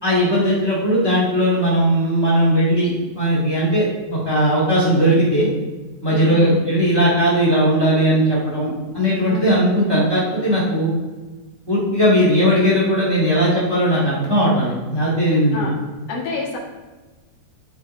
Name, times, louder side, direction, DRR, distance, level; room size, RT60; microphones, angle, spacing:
voice 1, 0.0-3.8 4.1-5.5 6.0-10.9 11.7-15.5, equal, 35° left, -8 dB, 0.4 m, -18 dB
voice 2, 6.1-6.6 9.3-9.5 15.3-15.7 16.1-16.6, left 3 dB, 75° left, -2 dB, 3.3 m, -28 dB
13.0 x 4.7 x 3.2 m, 1.3 s
omnidirectional pair, 4.3 m